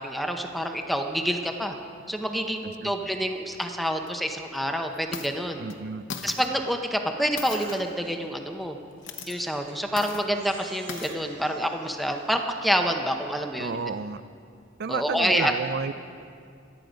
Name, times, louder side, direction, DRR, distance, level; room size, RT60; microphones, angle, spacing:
voice 1, 0.0-1.7 2.1-5.7 6.2-8.8 9.3-13.8 14.9-15.5, equal, ahead, 4 dB, 0.8 m, -27 dB
sound 1, 3.5-3.6 4.1-4.2 4.9-5.3 5.7-5.8 6.1-6.5 7.4-8.0 8.9-9.4 10.0-10.3 10.9-11.2, left 6 dB, 65° left, 1.0 m, -38 dB
voice 2, 5.6-6.0 13.6-14.2 14.8-15.9, right 5 dB, 55° right, 14 dB, 0.5 m, -31 dB
Crying sobbing, 7.3-8.1 9.0-9.8 10.3-12.5, right 3 dB, 85° right, 3.2 m, -49 dB
25.0 x 9.5 x 5.2 m, 2.4 s
head